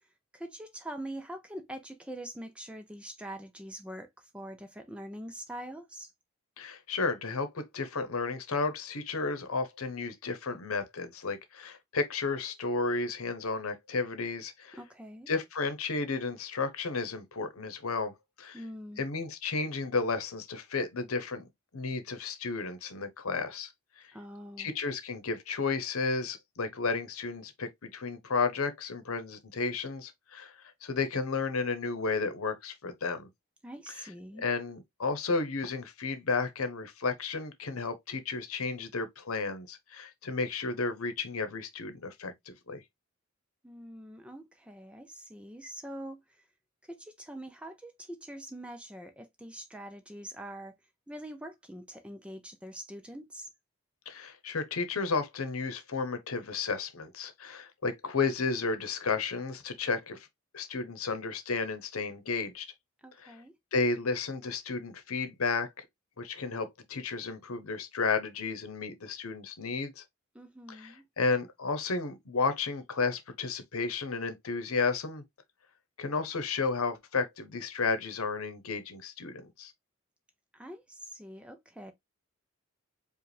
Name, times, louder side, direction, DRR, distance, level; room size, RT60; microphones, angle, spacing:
voice 1, 0.3-6.1 14.7-15.3 18.5-19.0 24.1-24.7 33.6-34.4 43.6-46.4 46.9-50.7 51.1-53.5 63.0-63.5 70.3-71.0 80.5-81.9, right 1 dB, 5° right, 0.5 m, -44 dB
voice 2, 6.6-14.8 15.3-18.6 19.0-21.5 21.7-23.7 24.0-24.1 24.6-33.3 34.4-42.8 54.1-60.3 60.5-62.7 63.2-63.4 63.7-65.8 66.2-70.0 70.7-75.2 76.0-79.7, left 4 dB, 85° left, 0.9 m, -33 dB
5.0 x 2.3 x 3.2 m
head